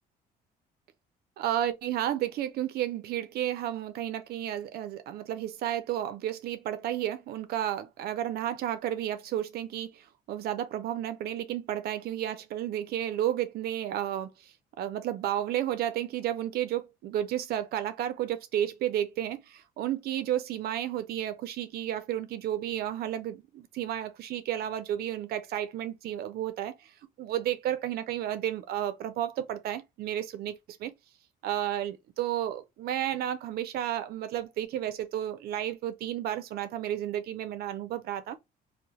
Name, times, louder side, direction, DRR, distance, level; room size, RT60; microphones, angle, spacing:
voice 1, 1.4-10.0 10.3-14.3 14.8-26.7 27.2-30.5 30.8-30.9 31.4-38.4, right 11 dB, 70° right, 0.4 m, -32 dB
2.8 x 2.1 x 4.0 m
cardioid pair, 110°, 17 cm